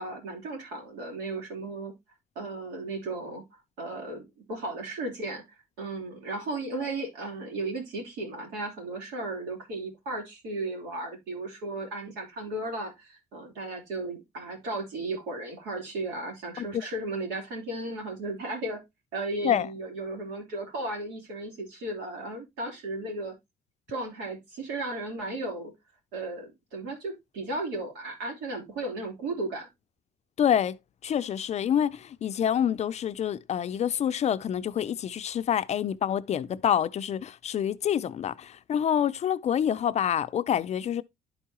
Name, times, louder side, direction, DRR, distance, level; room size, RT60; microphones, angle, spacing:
voice 1, 0.0-1.9 2.3-3.4 3.8-5.4 5.8-18.8 19.1-23.3 23.9-25.7 26.1-29.7, right 2 dB, 85° right, 3.5 m, -35 dB
voice 2, 30.4-30.8 31.0-41.0, left 9 dB, 40° left, 0.4 m, -27 dB
11.5 x 4.6 x 2.9 m
cardioid pair, 110°, 17 cm